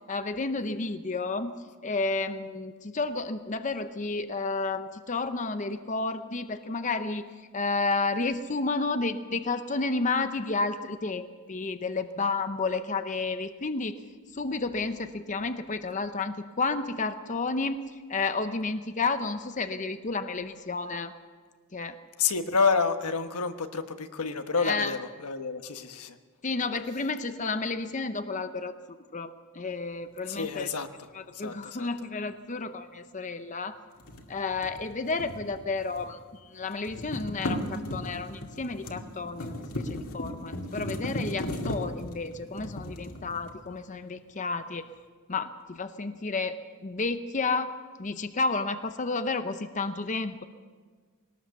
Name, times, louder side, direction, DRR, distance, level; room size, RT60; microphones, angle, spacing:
voice 1, 0.1-1.5 1.8-7.3 7.5-14.0 14.3-17.8 18.1-21.1 21.7-22.0 24.6-25.0 26.4-28.7 29.1-30.7 31.1-33.8 34.3-44.9 45.3-46.6 46.8-47.7 48.0-50.4, left 3 dB, 35° left, 9 dB, 0.7 m, -31 dB
voice 2, 22.2-26.2 30.3-30.9 31.3-31.9, left 5 dB, 85° left, 7 dB, 1.2 m, -29 dB
sound 1, 34.0-36.2 36.5-43.8, left 1 dB, 65° left, 2.3 m, -36 dB
21.0 x 18.5 x 7.0 m, 1.5 s
head